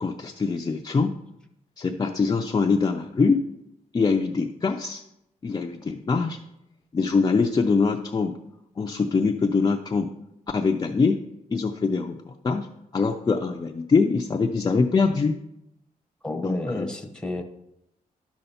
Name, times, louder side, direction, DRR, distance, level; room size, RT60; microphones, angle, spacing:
voice 1, 0.0-1.1 1.8-3.5 3.9-5.0 5.4-6.4 6.9-8.4 8.8-10.1 10.5-11.2 11.5-12.7 12.9-15.4 16.4-16.9, left 4 dB, 25° left, 2 dB, 0.4 m, -23 dB
voice 2, 16.2-17.4, left 2 dB, 5° left, 4 dB, 0.8 m, -30 dB
11.0 x 6.7 x 4.2 m, 0.82 s
wide cardioid pair, 170°, 15 cm